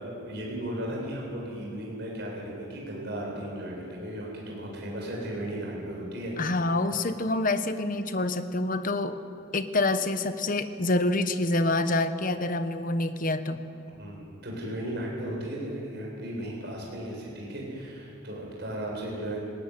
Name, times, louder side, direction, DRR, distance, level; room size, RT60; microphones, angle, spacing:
voice 1, 0.0-6.6 14.0-19.4, right 1 dB, 55° right, -2 dB, 7.7 m, -35 dB
voice 2, 6.4-9.2 9.5-13.6, left 2 dB, 40° left, 10 dB, 1.1 m, -27 dB
19.0 x 18.5 x 9.8 m, 2.5 s
head